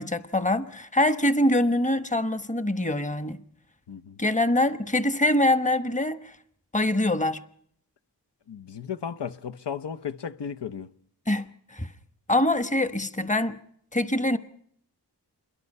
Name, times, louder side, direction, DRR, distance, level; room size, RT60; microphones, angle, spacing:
voice 1, 0.0-3.4 4.2-6.3 6.7-7.4 11.3-11.9 12.3-13.6 13.9-14.4, left 1 dB, 20° left, 1.1 m, -24 dB
voice 2, 3.9-4.2 8.5-10.9, left 7 dB, 80° left, 0.8 m, -35 dB
27.0 x 22.0 x 5.5 m
wide cardioid pair, 60°, 41 cm